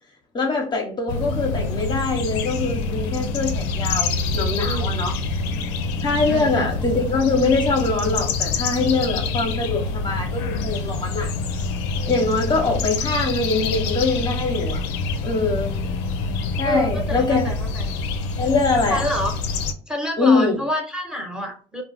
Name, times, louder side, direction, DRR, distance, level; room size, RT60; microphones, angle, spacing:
voice 1, 0.3-5.1 6.0-11.3 12.1-14.8 15.2-15.7 16.6-17.5 18.4-19.0 20.2-20.6, left 3 dB, 30° left, 0.8 m, -23 dB
sound 1, 1.1-19.7, left 3 dB, 85° left, 0.4 m, -26 dB
voice 2, 4.6-5.0 6.3-6.7 16.6-17.9 18.9-19.3 19.9-21.8, equal, 5° right, 0.9 m, -27 dB
2.3 x 2.1 x 3.4 m
supercardioid pair, 80°, 14 cm